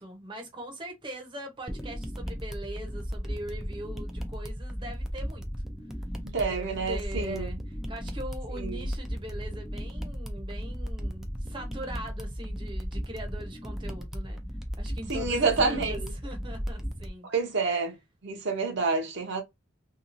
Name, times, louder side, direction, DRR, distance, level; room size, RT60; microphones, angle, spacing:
voice 1, 0.0-5.5 6.4-14.4 14.8-17.3, right 1 dB, 25° right, 0.7 m, -41 dB
sound 1, 1.7-17.1, equal, ahead, 0.4 m, -35 dB
voice 2, 6.2-7.5 8.6-8.9 15.1-16.1 17.2-18.0 18.2-19.4, right 4 dB, 60° right, 0.7 m, -28 dB
2.8 x 2.3 x 2.5 m
head